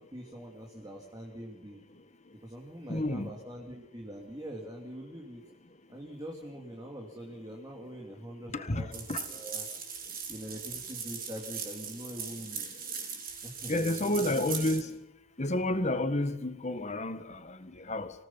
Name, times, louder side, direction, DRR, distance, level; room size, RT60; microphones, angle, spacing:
voice 1, 0.1-1.8 2.4-5.4 5.9-9.6 10.3-12.9 13.4-14.4, equal, 20° right, 2.9 m, -44 dB
voice 2, 2.9-3.3 8.5-9.2 13.7-14.9 15.4-18.1, left 1 dB, 35° left, 1.7 m, -30 dB
sound 1, 8.9-14.8, right 6 dB, 50° right, 7.1 m, -39 dB
26.5 x 18.0 x 5.8 m
head